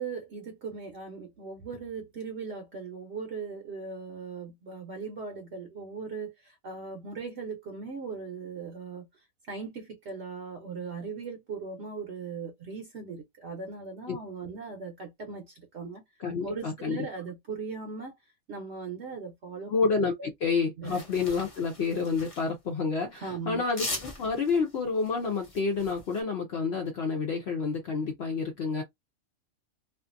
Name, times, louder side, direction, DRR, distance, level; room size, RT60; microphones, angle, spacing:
voice 1, 0.0-9.1 9.5-16.0 16.4-18.1 18.5-19.7 20.2-20.3 20.8-21.0 23.1-23.6, right 5 dB, 60° right, 0.8 m, -39 dB
voice 2, 16.2-17.0 19.7-28.8, left 4 dB, 60° left, 0.8 m, -29 dB
sound 1, 20.9-22.5 23.7-26.2, left 2 dB, 30° left, 0.8 m, -40 dB
2.5 x 2.4 x 2.5 m
omnidirectional pair, 1.4 m